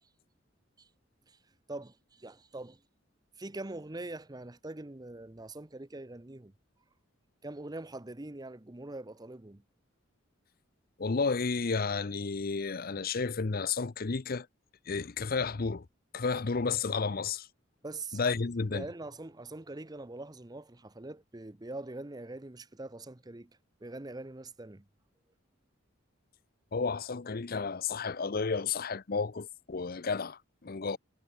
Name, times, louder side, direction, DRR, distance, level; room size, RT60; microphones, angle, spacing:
voice 1, 1.7-2.8 3.4-6.5 7.4-9.6 17.8-18.2 18.7-23.5 23.8-24.8, right 2 dB, 20° right, 0.8 m, -43 dB
voice 2, 11.0-14.5 14.9-15.9 16.1-17.5 18.1-18.9 26.7-31.0, left 4 dB, 45° left, 0.7 m, -32 dB
head